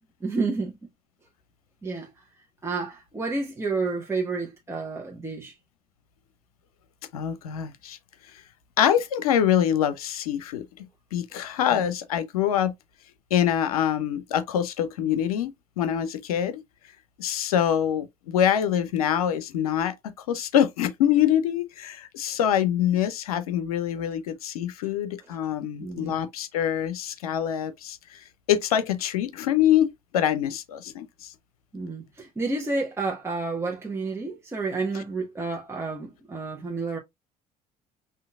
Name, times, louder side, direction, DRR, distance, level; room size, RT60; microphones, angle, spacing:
voice 1, 0.2-0.9 1.8-2.1 2.6-5.5 11.7-11.9 25.8-26.2 31.7-37.0, right 3 dB, 15° right, 1.1 m, -30 dB
voice 2, 7.1-8.0 8.8-10.6 11.1-12.7 13.3-16.6 17.2-28.2 28.5-31.3 34.9-35.0, left 10 dB, 75° left, 0.6 m, -25 dB
5.6 x 2.6 x 2.3 m
figure-of-eight pair, 55°, 19 cm